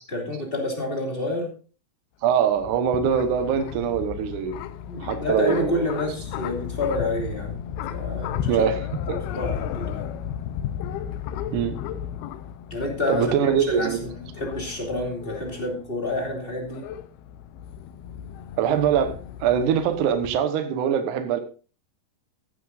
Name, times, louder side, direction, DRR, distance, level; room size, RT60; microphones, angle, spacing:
voice 1, 0.1-1.5 4.9-7.6 7.9-8.6 9.1-10.2 12.7-13.2 13.8-16.8, left 1 dB, 25° left, 1.3 m, -28 dB
sound 1, 2.2-20.4, left 9 dB, 90° left, 2.2 m, -34 dB
voice 2, 2.2-4.6 5.0-6.0 8.5-9.2 11.5-11.8 13.1-14.0 18.6-21.4, right 8 dB, 80° right, 1.8 m, -23 dB
15.0 x 11.0 x 2.6 m
omnidirectional pair, 5.4 m